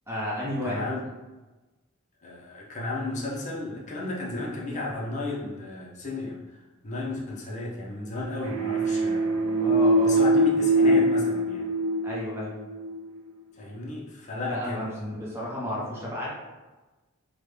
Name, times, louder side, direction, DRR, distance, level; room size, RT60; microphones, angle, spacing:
voice 1, 0.1-0.9 9.6-10.2 12.0-12.5 14.4-14.9 15.1-16.3, equal, 10° right, -6 dB, 0.8 m, -32 dB
voice 2, 0.6-1.0 2.2-6.4 6.8-9.3 10.0-11.7 13.6-15.3, left 2 dB, 35° left, -3 dB, 0.6 m, -33 dB
sound 1, 8.4-12.9, right 1 dB, 85° right, 0.5 m, -23 dB
3.6 x 2.2 x 3.2 m, 1.2 s
head